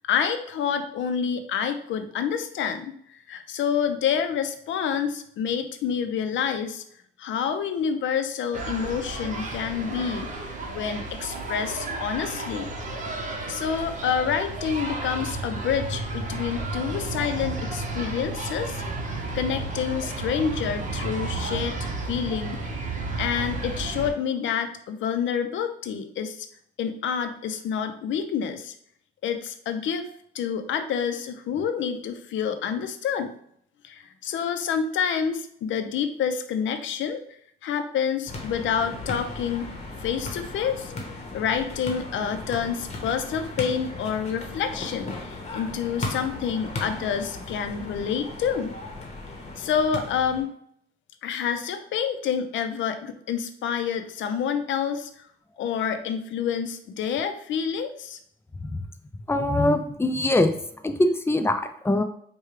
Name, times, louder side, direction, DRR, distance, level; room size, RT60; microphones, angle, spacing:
voice 1, 0.1-6.8 7.2-12.7 13.5-18.8 19.3-22.6 23.2-26.5 26.8-28.7 29.2-30.1 30.3-33.3 33.8-37.2 37.6-39.7 40.0-40.9 41.3-48.7 49.6-50.5 51.2-55.1 55.6-58.2, left 7 dB, 70° left, 7 dB, 0.5 m, -28 dB
sound 1, 8.5-24.1, right 3 dB, 40° right, 0.9 m, -33 dB
sound 2, 8.8-24.0, left 4 dB, 55° left, 0.9 m, -44 dB
sound 3, 38.3-50.4, left 2 dB, 35° left, 1.0 m, -36 dB
voice 2, 59.3-60.5 60.8-62.0, left 1 dB, 10° left, 7 dB, 0.4 m, -22 dB
4.6 x 2.3 x 3.2 m, 0.67 s
cardioid pair, 90°, 20 cm